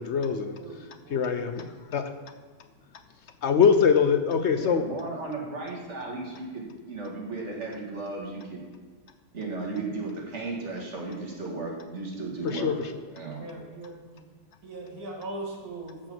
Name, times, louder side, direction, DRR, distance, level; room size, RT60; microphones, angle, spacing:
voice 1, 0.0-0.6 1.1-1.6 1.9-2.0 3.4-4.8 12.4-13.0, left 6 dB, 60° left, 8 dB, 0.8 m, -23 dB
voice 2, 0.6-1.2 13.4-14.2 14.6-16.1, right 2 dB, 80° right, 0 dB, 2.6 m, -40 dB
voice 3, 4.6-8.6 9.3-12.7 13.2-13.4, right 3 dB, 50° right, -2 dB, 2.4 m, -35 dB
14.0 x 4.7 x 6.1 m, 1.4 s
omnidirectional pair, 1.5 m